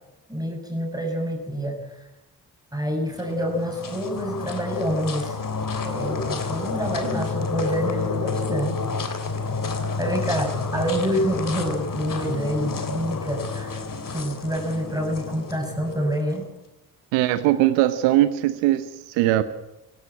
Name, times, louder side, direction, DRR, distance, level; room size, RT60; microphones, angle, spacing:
voice 1, 0.3-2.0 2.7-5.4 5.8-8.7 9.3-9.7 10.0-13.8 14.1-16.4, equal, 10° right, 1 dB, 6.3 m, -27 dB
sound 1, 3.1-16.4, left 4 dB, 45° left, 3.2 m, -30 dB
voice 2, 17.1-19.4, right 14 dB, 75° right, 13 dB, 1.0 m, -20 dB
17.5 x 17.5 x 8.6 m, 0.92 s
hypercardioid pair, 40°, 45 cm